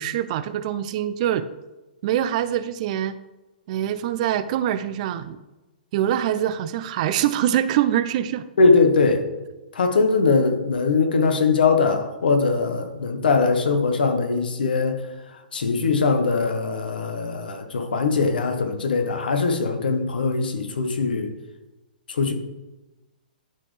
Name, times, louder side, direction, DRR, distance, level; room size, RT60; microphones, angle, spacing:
voice 1, 0.0-1.5 2.0-3.1 3.7-5.4 5.9-8.4, right 11 dB, 45° right, 13 dB, 0.5 m, -24 dB
voice 2, 8.6-9.3 9.7-15.0 15.5-21.3 22.1-22.3, left 4 dB, 75° left, 6 dB, 1.2 m, -21 dB
11.5 x 4.2 x 3.3 m, 1.1 s
hypercardioid pair, 120°, 5 cm